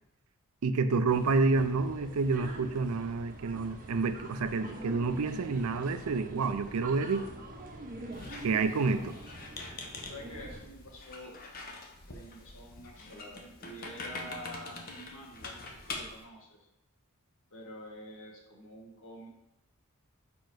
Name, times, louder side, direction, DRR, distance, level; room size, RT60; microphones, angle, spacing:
voice 1, 0.6-7.3 8.4-9.2, right 4 dB, 75° right, 11 dB, 0.5 m, -29 dB
sound 1, 1.1-10.6, right 1 dB, 40° right, 0.8 m, -45 dB
Squeak, 8.1-16.2, left 3 dB, 40° left, 0.8 m, -44 dB
voice 2, 10.1-11.3 12.1-16.7 17.5-19.3, equal, 60° left, -1 dB, 1.4 m, -48 dB
5.2 x 4.6 x 4.7 m, 0.88 s
head